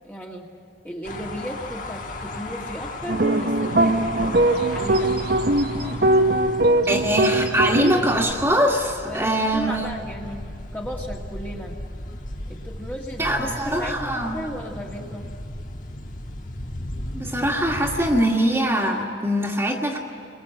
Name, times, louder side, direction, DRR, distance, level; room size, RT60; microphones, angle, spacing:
voice 1, 0.0-0.5 0.8-4.4 4.7-5.2 9.0-10.4 10.7-11.8 12.5-15.3, equal, 10° left, -2 dB, 1.8 m, -35 dB
sound 1, 1.0-18.2, left 1 dB, 45° left, 1.4 m, -36 dB
sound 2, 3.1-8.3, right 1 dB, 55° right, 1.0 m, -21 dB
voice 2, 6.9-9.9 13.2-14.4 17.1-20.0, equal, 15° right, 0 dB, 1.9 m, -22 dB
30.0 x 22.5 x 7.9 m, 2.3 s
head